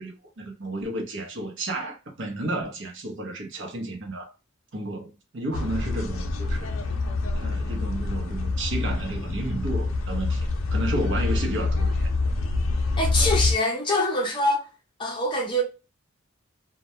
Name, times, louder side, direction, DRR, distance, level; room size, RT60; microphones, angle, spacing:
voice 1, 0.0-4.3 4.7-6.7 7.3-12.1, right 1 dB, 60° right, 0.7 m, -32 dB
sound 1, 5.5-13.6, left 3 dB, 75° left, 0.5 m, -26 dB
voice 2, 13.0-14.7 15.0-15.6, left 1 dB, 25° left, 0.6 m, -24 dB
2.2 x 2.1 x 2.7 m
head